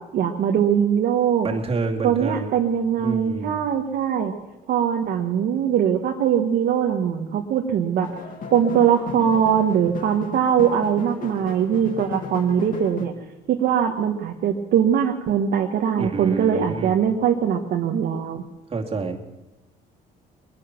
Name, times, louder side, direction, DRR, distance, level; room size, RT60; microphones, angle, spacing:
voice 1, 0.1-1.5 2.0-4.3 4.7-8.1 8.5-13.1 13.5-18.4, right 8 dB, 65° right, 2 dB, 1.5 m, -21 dB
voice 2, 1.4-2.5 3.0-3.6 16.0-16.9 18.7-19.2, right 3 dB, 35° right, 1 dB, 2.5 m, -28 dB
sound 1, 8.0-13.1, left 5 dB, 55° left, 2.2 m, -35 dB
22.5 x 10.5 x 6.1 m, 1.1 s
cardioid pair, 110°, 17 cm